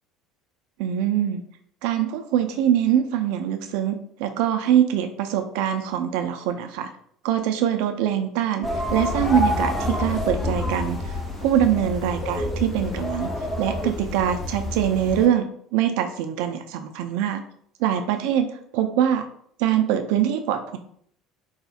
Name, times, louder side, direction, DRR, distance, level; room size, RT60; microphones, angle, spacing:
voice 1, 0.8-1.4 1.8-6.9 7.2-11.1 11.4-13.3 13.6-17.4 17.8-18.5 18.7-19.3 19.6-20.8, right 10 dB, 60° right, 7 dB, 0.3 m, -23 dB
sound 1, 8.6-15.3, left 1 dB, 20° left, 0.7 m, -28 dB
4.1 x 2.0 x 2.4 m, 0.64 s
figure-of-eight pair, 65°, 0 cm